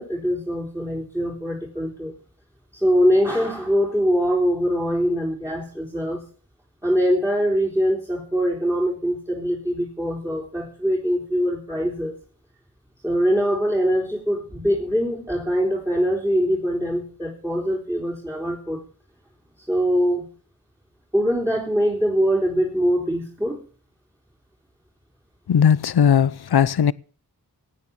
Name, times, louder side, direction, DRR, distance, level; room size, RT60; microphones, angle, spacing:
voice 1, 0.0-2.1 2.7-6.2 6.8-12.1 13.0-18.8 19.6-20.3 21.1-23.6, equal, 5° right, 3.7 m, -23 dB
voice 2, 25.5-26.9, left 8 dB, 70° left, 0.7 m, -18 dB
17.0 x 9.2 x 7.0 m
wide cardioid pair, 45°, 40 cm